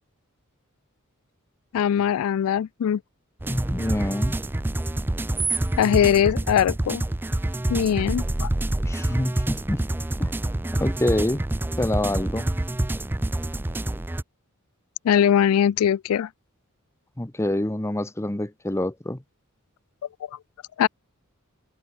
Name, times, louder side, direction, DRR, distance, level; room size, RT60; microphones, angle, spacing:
voice 1, 1.7-3.0 5.8-7.0 7.7-8.5 15.0-16.3 20.8-20.9, left 9 dB, 75° left, 0.3 m, -21 dB
sound 1, 3.4-14.2, right 1 dB, 10° right, 0.4 m, -27 dB
voice 2, 3.5-4.4 8.8-9.9 10.2-10.3 10.8-11.5 11.8-12.5 17.2-19.2, left 1 dB, 15° left, 0.9 m, -26 dB
head